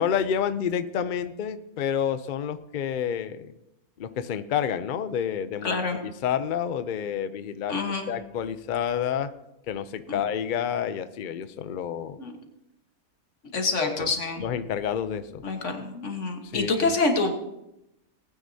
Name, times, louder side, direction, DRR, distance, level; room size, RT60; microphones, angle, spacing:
voice 1, 0.0-3.5 4.0-7.8 8.1-9.3 9.7-12.2 13.8-14.1 14.4-15.4 16.5-16.9, left 8 dB, 85° left, 12 dB, 0.4 m, -29 dB
voice 2, 5.6-6.0 7.7-8.1 10.1-10.2 12.2-12.4 13.5-14.4 15.4-17.3, left 3 dB, 55° left, 4 dB, 1.7 m, -27 dB
19.0 x 9.4 x 2.7 m, 0.88 s
omnidirectional pair, 1.6 m